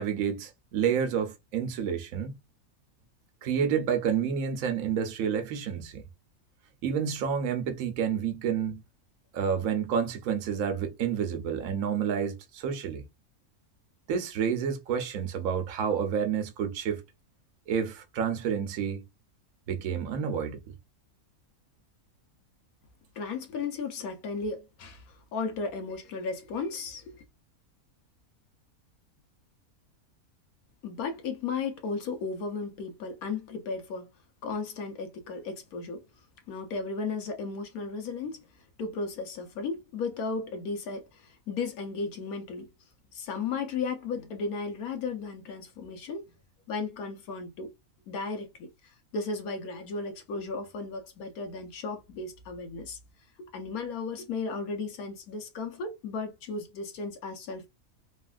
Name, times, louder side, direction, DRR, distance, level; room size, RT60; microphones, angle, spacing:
voice 1, 0.0-2.3 3.4-6.0 6.8-8.8 9.3-13.0 14.1-17.0 17.7-19.0 19.7-20.6, right 7 dB, 70° right, 1.1 m, -29 dB
voice 2, 23.2-25.0 25.3-27.2 30.8-34.1 34.4-36.0 36.5-38.4 38.8-42.7 43.1-46.2 46.7-47.7 48.1-48.7 49.1-53.0 53.5-57.7, left 4 dB, 90° left, 1.3 m, -35 dB
3.2 x 2.4 x 2.3 m
omnidirectional pair, 1.5 m